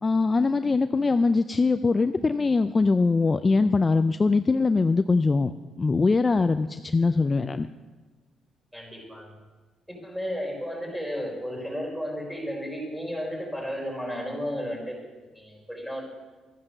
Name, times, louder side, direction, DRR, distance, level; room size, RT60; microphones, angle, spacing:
voice 1, 0.0-5.5 5.8-7.7, left 3 dB, 30° left, 10 dB, 0.4 m, -22 dB
voice 2, 8.7-9.4 9.9-15.0 15.4-16.0, equal, 5° right, -1 dB, 4.4 m, -33 dB
13.0 x 9.6 x 6.6 m, 1.3 s
cardioid pair, 85°, 0 cm